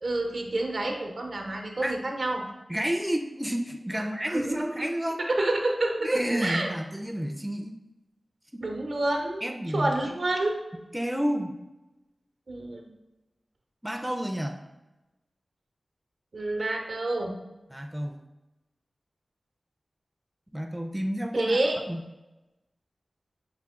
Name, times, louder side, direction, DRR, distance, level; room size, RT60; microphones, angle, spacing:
voice 1, 0.0-2.4 3.9-4.0 4.3-4.7 5.3-6.7 8.6-9.5 9.7-10.6 12.5-12.9 16.3-17.4 21.3-21.8, right 2 dB, 70° right, 2 dB, 0.7 m, -28 dB
voice 2, 2.7-5.2 6.0-7.8 8.5-8.6 9.4-9.9 10.9-11.6 13.8-14.6 17.7-18.2 20.5-21.6 21.9-22.0, equal, 5° right, 4 dB, 0.4 m, -30 dB
5.7 x 2.1 x 3.6 m, 1.0 s
cardioid pair, 55°, 0 cm